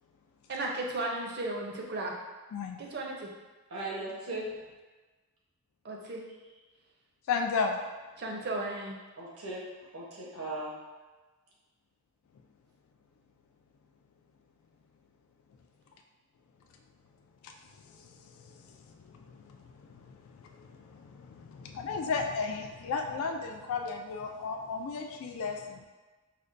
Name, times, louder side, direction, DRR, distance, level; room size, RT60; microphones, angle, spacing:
voice 1, 0.5-2.1 2.8-3.3 5.8-6.2 8.2-9.0, right 2 dB, 50° right, -1 dB, 0.6 m, -35 dB
voice 2, 3.7-4.5 9.2-9.6 9.9-10.7, right 2 dB, 90° right, -5 dB, 1.0 m, -37 dB
voice 3, 7.3-7.8 10.3-10.6 17.4-17.5 18.4-18.8 19.1-19.6 20.1-20.2 20.6-25.8, left 5 dB, 70° left, 3 dB, 0.3 m, -34 dB
5.0 x 2.2 x 2.5 m, 1.3 s
head